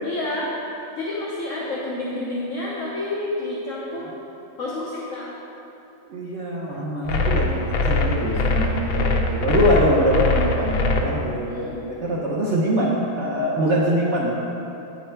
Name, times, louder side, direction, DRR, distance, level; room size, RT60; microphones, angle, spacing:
voice 1, 0.0-0.5 1.0-4.1 4.6-5.3 11.5-11.8, left 2 dB, 50° left, -5 dB, 1.0 m, -29 dB
voice 2, 1.4-1.7 3.9-4.0 6.0-14.4, equal, 55° right, -5 dB, 0.8 m, -23 dB
sound 1, 7.1-11.0, left 3 dB, 90° left, 0.7 m, -22 dB
8.8 x 5.5 x 4.4 m, 2.9 s
omnidirectional pair, 2.2 m